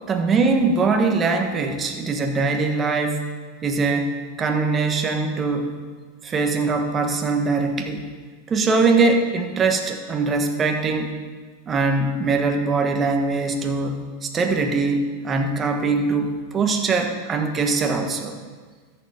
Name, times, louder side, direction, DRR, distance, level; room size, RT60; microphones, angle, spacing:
voice 1, 0.1-3.2 3.6-5.7 6.2-8.1 8.5-11.1 11.7-18.3, right 3 dB, 25° right, 4 dB, 1.4 m, -22 dB
14.0 x 7.0 x 4.3 m, 1.5 s
hypercardioid pair, 105°, 0 cm